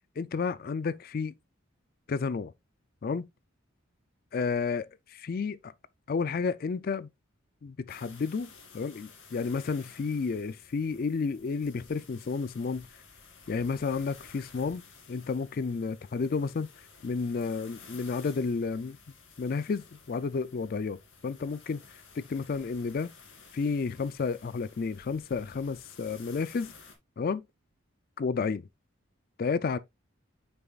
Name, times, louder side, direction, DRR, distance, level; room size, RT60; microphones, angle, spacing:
voice 1, 0.2-1.3 2.1-2.5 3.0-3.3 4.3-5.7 6.1-7.1 7.6-12.9 13.5-14.8 15.1-16.7 17.0-19.0 19.4-21.8 22.2-23.1 23.5-26.7 27.2-27.4 28.2-28.7 29.4-29.8, left 5 dB, 45° left, 0.4 m, -31 dB
sound 1, 7.9-27.0, left 5 dB, 65° left, 2.5 m, -53 dB
8.9 x 6.9 x 2.4 m
head